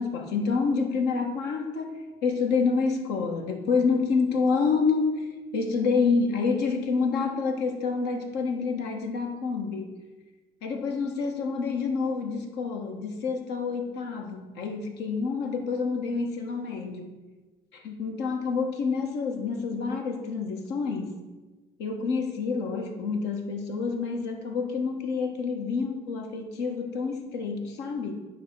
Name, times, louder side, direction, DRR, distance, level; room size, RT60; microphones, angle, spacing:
voice 1, 0.0-5.2 5.5-9.9 10.6-17.1 17.7-21.2 21.8-28.1, left 4 dB, 80° left, 4 dB, 1.3 m, -28 dB
9.4 x 3.5 x 6.6 m, 1.2 s
cardioid pair, 110°, 17 cm